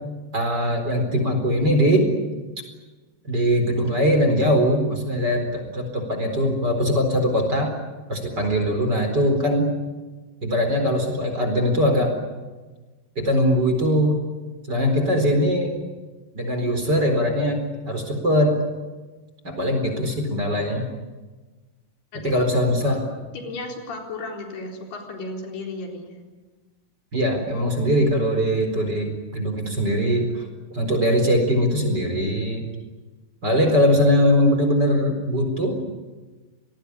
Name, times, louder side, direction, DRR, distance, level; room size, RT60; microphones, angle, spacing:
voice 1, 0.3-2.1 3.2-7.7 8.1-9.7 10.4-12.1 13.2-14.2 14.7-15.7 16.3-18.6 19.4-20.9 22.2-23.0 27.1-30.4 30.7-32.6 33.4-35.8, equal, 25° right, 4 dB, 4.5 m, -21 dB
voice 2, 22.1-22.5 22.8-23.0 23.3-26.2, left 2 dB, 80° left, 2 dB, 5.9 m, -34 dB
27.5 x 19.5 x 9.9 m, 1.3 s
omnidirectional pair, 4.6 m